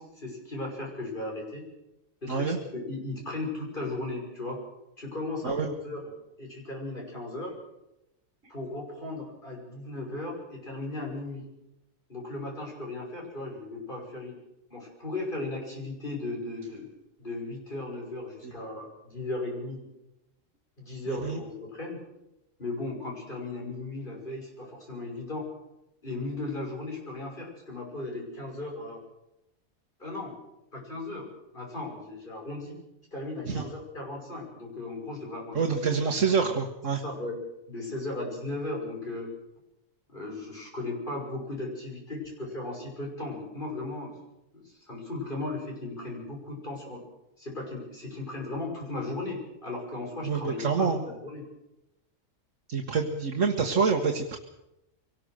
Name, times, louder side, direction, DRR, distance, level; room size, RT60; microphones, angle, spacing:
voice 1, 0.0-1.7 2.2-4.6 5.0-6.0 6.4-7.5 8.5-11.4 12.1-14.4 14.7-16.9 17.2-19.8 20.8-22.0 22.6-25.5 26.0-29.0 30.0-30.4 30.7-31.3 31.5-32.8 33.1-36.0 36.9-37.4 37.7-39.3 40.1-44.1 44.5-47.0 47.4-51.5, left 2 dB, 35° left, -1 dB, 6.5 m, -36 dB
voice 2, 21.1-21.4 33.5-33.6 35.5-37.0 50.2-51.0 52.7-54.4, right 5 dB, 65° right, 2 dB, 1.9 m, -26 dB
23.5 x 19.0 x 6.5 m, 0.91 s
omnidirectional pair, 1.4 m